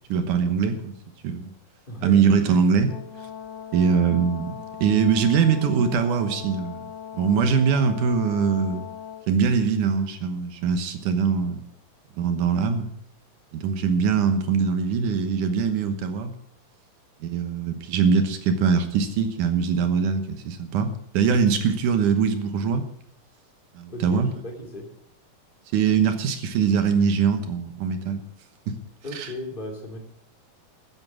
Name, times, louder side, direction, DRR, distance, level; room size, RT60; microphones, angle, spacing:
voice 1, 0.1-0.9 1.2-1.5 2.0-2.9 3.7-4.5 4.8-6.9 7.1-8.9 9.3-11.6 12.2-12.9 13.5-16.3 17.2-22.9 23.8-24.3 25.7-28.2 29.1-29.3, right 6 dB, 70° right, 8 dB, 2.6 m, -22 dB
Brass instrument, 2.9-9.3, left 8 dB, 45° left, 2.8 m, -39 dB
voice 2, 23.9-24.9 29.0-30.0, left 1 dB, 15° left, 1 dB, 2.6 m, -35 dB
13.5 x 9.8 x 6.2 m, 0.69 s
omnidirectional pair, 3.9 m